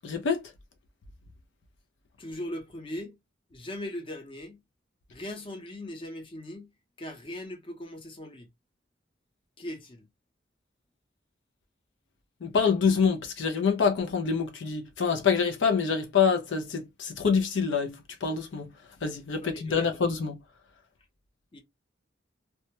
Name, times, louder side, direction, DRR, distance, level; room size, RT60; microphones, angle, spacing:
voice 1, 0.0-0.5 12.4-18.7 19.0-20.4, left 6 dB, 70° left, 0.4 m, -26 dB
voice 2, 2.2-3.2 3.5-4.6 5.1-6.7 7.0-8.5 9.6-10.1 19.4-19.9 21.5-21.6, left 1 dB, 30° left, 0.6 m, -39 dB
2.2 x 2.1 x 2.8 m
head